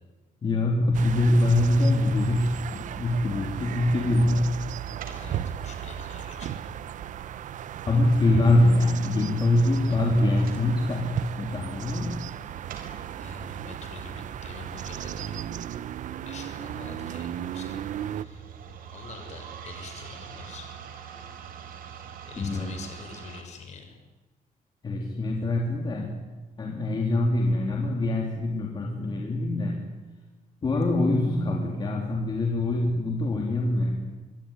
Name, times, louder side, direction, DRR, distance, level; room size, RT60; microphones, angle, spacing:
voice 1, 0.4-4.5 7.9-12.2 22.4-22.7 24.8-26.1 26.6-29.8 30.6-33.9, left 1 dB, 30° left, 1 dB, 3.2 m, -24 dB
sound 1, 0.9-18.3, right 10 dB, 60° right, 0.9 m, -36 dB
sound 2, 3.8-23.4, right 8 dB, 80° right, 4.5 m, -46 dB
voice 2, 5.2-6.8 13.2-15.4 16.2-18.5 18.9-20.7 22.2-24.0, left 5 dB, 50° left, 5 dB, 6.6 m, -45 dB
25.5 x 23.0 x 10.0 m, 1.2 s
cardioid pair, 175°, 15 cm